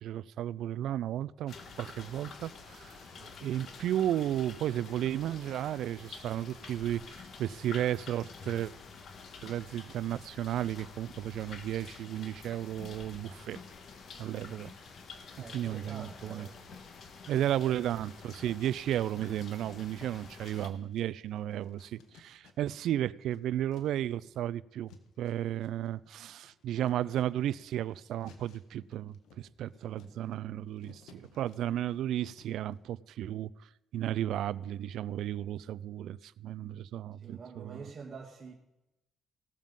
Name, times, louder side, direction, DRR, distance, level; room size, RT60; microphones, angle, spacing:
voice 1, 0.0-3.0 3.4-8.7 9.4-13.6 14.2-14.7 15.4-16.5 17.3-33.5 33.9-37.8, right 12 dB, 80° right, 0.4 m, -34 dB
sound 1, 1.5-20.7, left 5 dB, 60° left, 1.8 m, -49 dB
voice 2, 15.4-16.5 17.4-17.9 29.9-30.4 37.2-38.5, right 5 dB, 40° right, 2.0 m, -47 dB
sound 2, 16.2-17.0 17.4-22.9 23.2-32.7, left 6 dB, 85° left, 1.5 m, -62 dB
17.5 x 7.3 x 5.4 m
cardioid pair, 90°, 0 cm